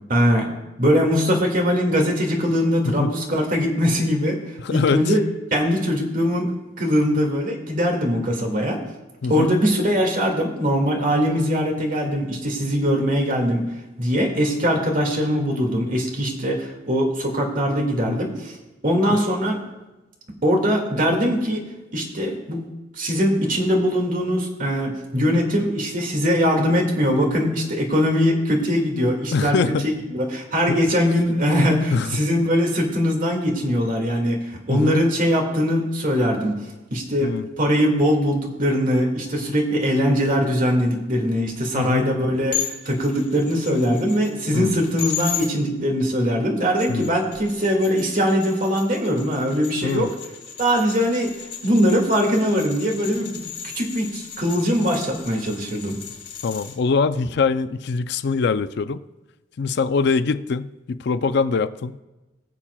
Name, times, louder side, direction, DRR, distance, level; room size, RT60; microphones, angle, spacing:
voice 1, 0.1-0.5 0.8-4.4 4.7-5.2 5.5-8.8 9.3-13.6 14.0-18.5 18.8-19.6 20.4-21.6 21.9-22.6 23.0-29.6 29.8-36.6 36.9-50.1 50.6-51.3 51.6-56.0, equal, 50° right, 2 dB, 2.0 m, -21 dB
voice 2, 4.6-5.1 9.2-9.5 18.1-18.2 29.3-29.9 30.7-30.8 31.9-32.2 34.7-35.0 37.2-37.5 41.7-42.1 44.5-44.8 46.9-47.1 49.8-50.1 56.4-59.0 59.6-62.0, left 4 dB, 65° left, 12 dB, 0.4 m, -23 dB
sound 1, 42.5-45.5 46.6-56.7, left 9 dB, 80° left, 3.4 m, -35 dB
21.5 x 7.3 x 2.3 m, 1.1 s
head